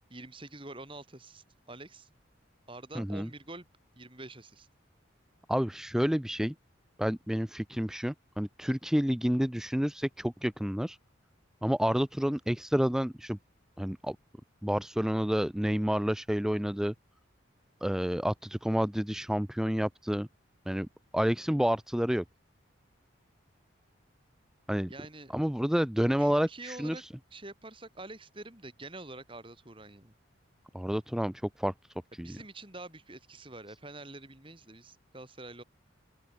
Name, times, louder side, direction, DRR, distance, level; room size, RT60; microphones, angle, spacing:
voice 1, 0.1-2.1 2.7-3.7 4.0-4.7 24.9-25.3 26.2-27.0 27.3-30.1 32.2-35.6, right 2 dB, 25° right, 3.5 m, -46 dB
voice 2, 3.0-3.3 5.5-6.5 7.0-11.0 11.6-13.4 13.8-14.2 14.6-16.9 17.8-20.3 20.7-20.9 21.1-22.2 24.7-24.9 25.3-27.1 30.7-31.7 32.1-32.4, equal, 5° right, 0.3 m, -29 dB
open air
head